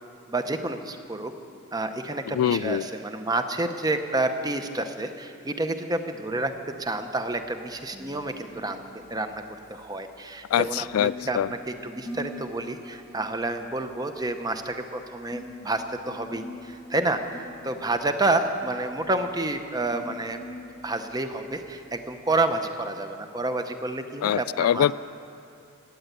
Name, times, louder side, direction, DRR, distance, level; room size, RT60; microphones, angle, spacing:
voice 1, 0.3-1.3 1.7-6.5 6.8-8.8 9.1-9.4 9.7-20.4 20.8-24.9, right 2 dB, 20° right, 7 dB, 0.8 m, -29 dB
voice 2, 2.3-2.9 10.5-11.5 24.2-24.9, left 10 dB, 85° left, 18 dB, 0.3 m, -24 dB
sound 1, 6.5-22.4, left 1 dB, ahead, 1.3 m, -45 dB
17.5 x 10.0 x 8.1 m, 2.7 s
head